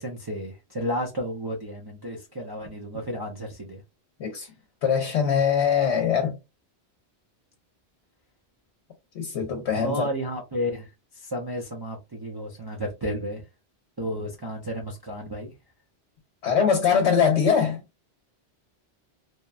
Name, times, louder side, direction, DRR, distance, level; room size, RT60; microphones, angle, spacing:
voice 1, 0.0-3.8 9.8-10.9 11.2-13.4 14.0-15.5, equal, 30° right, 0.5 m, -32 dB
voice 2, 4.8-6.4 9.1-10.1 16.4-17.8, left 7 dB, 90° left, 1.0 m, -22 dB
2.9 x 2.1 x 2.3 m
omnidirectional pair, 1.1 m